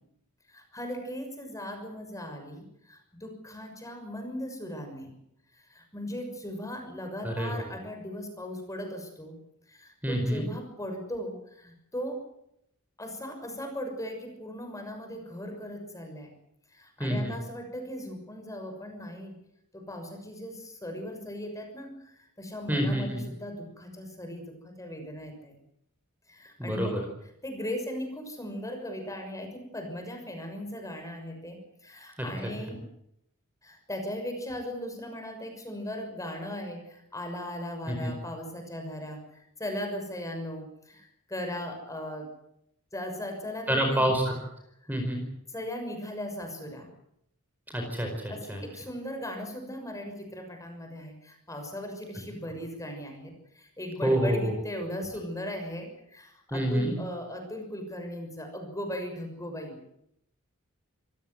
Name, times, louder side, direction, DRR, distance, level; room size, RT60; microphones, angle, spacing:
voice 1, 0.5-5.1 5.5-9.4 9.7-12.2 13.0-16.3 16.7-19.4 19.7-25.5 26.3-27.0 27.4-32.8 33.6-42.3 42.9-44.1 45.5-46.9 48.3-59.8, equal, 15° left, 4 dB, 6.4 m, -38 dB
voice 2, 10.0-10.4 17.0-17.3 22.7-23.2 26.6-27.0 32.2-32.3 37.9-38.1 43.7-44.3 44.9-45.2 47.7-48.7 54.0-54.5 56.5-56.9, right 1 dB, 10° right, 2 dB, 4.8 m, -27 dB
27.5 x 17.0 x 8.0 m, 0.76 s
head